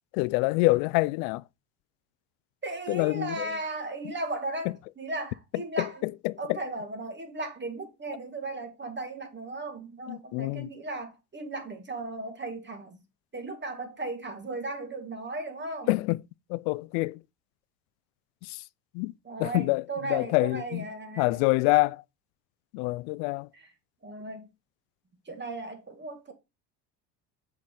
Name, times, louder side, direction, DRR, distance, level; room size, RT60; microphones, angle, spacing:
voice 1, 0.1-1.4 2.9-3.5 5.8-6.6 10.1-10.7 15.9-16.2 16.5-17.2 18.5-18.6 18.9-19.1 19.4-19.8 20.1-20.9 21.2-22.0 22.7-23.5, left 23 dB, 70° left, 0.5 m, -26 dB
voice 2, 2.6-6.1 6.4-13.0 13.3-15.9 19.2-21.5 23.5-23.7 24.0-24.5 25.3-26.3, right 2 dB, 25° right, 2.0 m, -36 dB
7.2 x 4.7 x 3.8 m
supercardioid pair, 80°, 46 cm